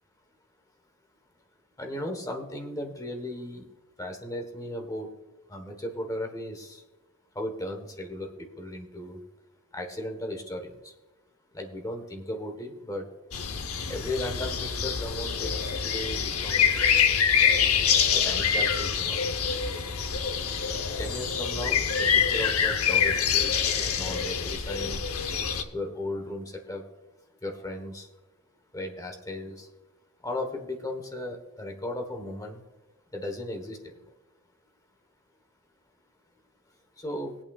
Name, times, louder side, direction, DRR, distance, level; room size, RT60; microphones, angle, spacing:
voice 1, 1.8-3.6 4.0-5.1 5.5-6.8 7.3-9.2 9.7-10.9 11.5-13.1 13.9-15.5 15.8-17.1 18.1-19.3 21.0-25.0 25.7-26.8 27.4-28.1 28.7-29.7 30.2-32.6 33.1-33.9 37.0-37.3, left 1 dB, 15° left, 3 dB, 1.1 m, -36 dB
sound 1, 13.3-25.6, left 7 dB, 70° left, 0.8 m, -25 dB
19.0 x 8.8 x 2.4 m, 1.1 s
head